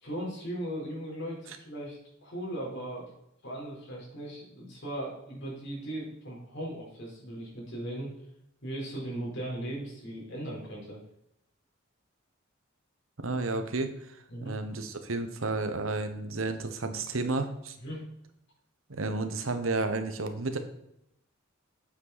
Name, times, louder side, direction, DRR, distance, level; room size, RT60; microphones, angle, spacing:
voice 1, 0.0-3.1 3.4-8.1 8.6-11.0 14.3-14.6 17.8-18.0, right 1 dB, 65° left, -4 dB, 4.1 m, -38 dB
voice 2, 13.2-13.9 14.4-17.8 18.9-20.6, right 3 dB, 85° right, 8 dB, 1.1 m, -31 dB
8.8 x 7.6 x 4.2 m, 0.79 s
head